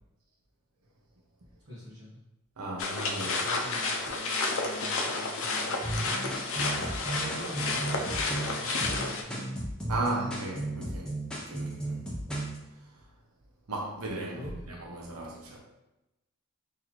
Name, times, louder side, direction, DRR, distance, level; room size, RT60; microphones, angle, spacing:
voice 1, 1.6-2.2 3.2-6.1 7.1-9.5 14.3-14.6, equal, 55° right, 1.0 m, -44 dB
voice 2, 2.6-3.4 9.9-12.2 12.8-13.1 13.7-15.6, right 2 dB, 90° right, 0.7 m, -36 dB
sound 1, 2.8-9.2, left 3 dB, 65° left, 0.5 m, -31 dB
sound 2, 5.8-12.6, right 1 dB, 5° left, 0.6 m, -34 dB
4.0 x 2.7 x 3.0 m
head